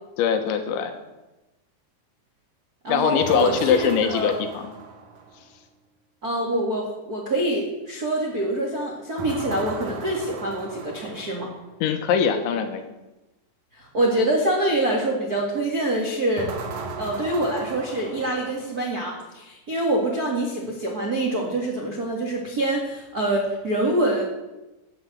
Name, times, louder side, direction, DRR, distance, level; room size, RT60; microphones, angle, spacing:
voice 1, 0.2-0.9 2.9-4.7 11.8-12.9, left 7 dB, 75° left, 6 dB, 3.6 m, -22 dB
voice 2, 2.8-4.4 6.2-11.5 13.7-16.5 17.0-24.2, right 1 dB, 50° right, -1 dB, 1.0 m, -25 dB
sound 1, 3.2-5.5 9.2-11.7 16.4-19.0, right 4 dB, 80° right, 1.6 m, -37 dB
16.0 x 8.1 x 8.0 m, 1.0 s
omnidirectional pair, 5.6 m